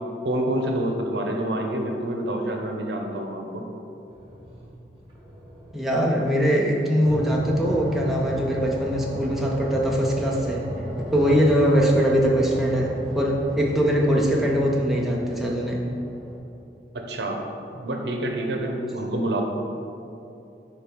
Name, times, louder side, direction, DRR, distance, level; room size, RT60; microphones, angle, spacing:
voice 1, 0.2-3.6 16.9-17.4 17.7-19.4, right 1 dB, 75° right, 2 dB, 0.7 m, -27 dB
sound 1, 4.1-6.4 7.0-16.4, equal, 30° right, 1.2 m, -34 dB
voice 2, 5.7-10.6 11.0-15.8, equal, ahead, -3 dB, 0.5 m, -22 dB
5.1 x 4.4 x 4.5 m, 2.8 s
head